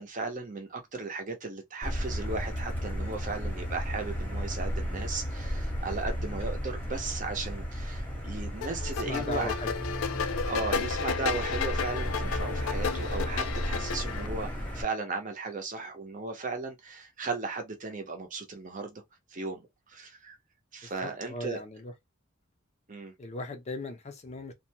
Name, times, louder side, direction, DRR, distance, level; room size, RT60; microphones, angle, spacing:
voice 1, 0.0-9.5 10.4-19.0 19.3-20.4 20.7-21.6 22.9-23.1, right 3 dB, 40° right, 0.7 m, -36 dB
Motor vehicle (road), 1.8-14.8, equal, 10° left, 0.8 m, -34 dB
sound 1, 8.6-14.3, left 6 dB, 90° left, 0.4 m, -33 dB
voice 2, 8.9-9.7 20.8-21.9 23.2-24.5, left 2 dB, 35° left, 0.5 m, -38 dB
2.5 x 2.2 x 2.8 m
head